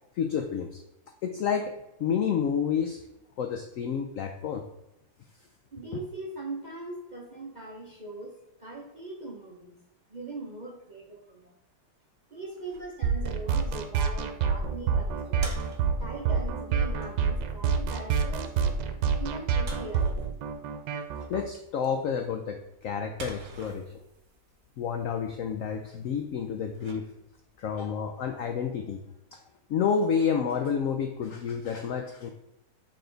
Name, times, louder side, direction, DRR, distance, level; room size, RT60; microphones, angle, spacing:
voice 1, 0.1-0.8 1.2-1.7 2.0-3.0 3.4-4.6 21.3-23.9 24.8-27.1 27.6-29.0 29.3-29.4 29.7-32.3, left 7 dB, 85° left, 5 dB, 0.7 m, -29 dB
voice 2, 5.7-8.3 8.6-9.8 10.1-11.5 12.3-15.5 16.0-18.7 19.0-20.4, right 2 dB, 40° right, -3 dB, 0.7 m, -41 dB
sound 1, 12.5-27.6, right 3 dB, 60° right, 1.4 m, -49 dB
sound 2, 13.0-21.4, right 6 dB, 80° right, 1.3 m, -27 dB
6.8 x 3.7 x 3.8 m, 0.88 s
omnidirectional pair, 2.0 m